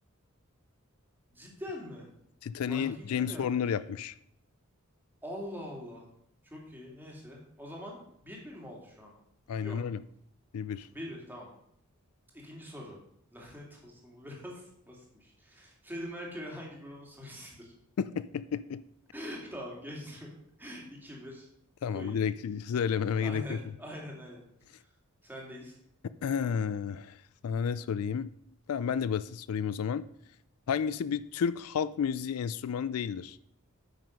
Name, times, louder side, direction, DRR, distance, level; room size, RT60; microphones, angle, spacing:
voice 1, 1.3-2.1 2.7-3.6 5.2-6.0 6.4-9.1 9.6-9.8 10.9-11.5 12.3-13.0 13.3-17.7 19.1-20.3 20.6-21.5 21.9-22.2 23.2-24.4 25.2-25.8, equal, 10° right, -2 dB, 2.4 m, -43 dB
voice 2, 2.4-4.1 9.5-10.0 10.5-10.9 18.0-18.8 21.8-23.6 26.2-27.2 27.4-28.3 28.7-30.0 30.7-33.4, left 7 dB, 80° left, 16 dB, 0.4 m, -31 dB
9.1 x 6.2 x 5.2 m, 0.73 s
head